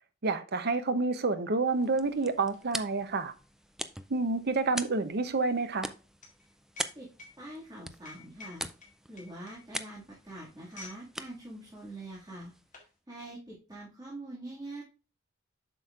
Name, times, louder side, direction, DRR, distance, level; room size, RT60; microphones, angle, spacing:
voice 1, 0.2-3.3 4.1-5.9, right 3 dB, 55° right, 0.7 m, -29 dB
sound 1, 0.8-0.9 1.1-11.1 11.4-11.6 12.3-12.9, left 3 dB, 40° left, 2.0 m, -53 dB
sound 2, 1.7-12.9, right 1 dB, ahead, 0.3 m, -43 dB
voice 2, 7.4-8.7 9.1-12.5 12.8-14.8, right 1 dB, 20° right, 2.0 m, -44 dB
7.7 x 6.2 x 2.4 m
head